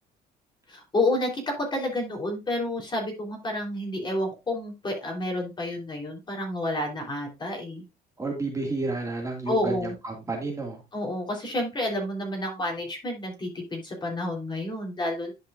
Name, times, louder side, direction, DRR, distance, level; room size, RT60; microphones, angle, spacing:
voice 1, 0.7-7.8 9.5-9.9 10.9-15.3, left 1 dB, 25° left, 0 dB, 3.6 m, -29 dB
voice 2, 8.2-10.8, right 3 dB, 20° right, 0 dB, 2.0 m, -31 dB
11.0 x 5.4 x 2.5 m, 0.24 s
cardioid pair, 110°, 17 cm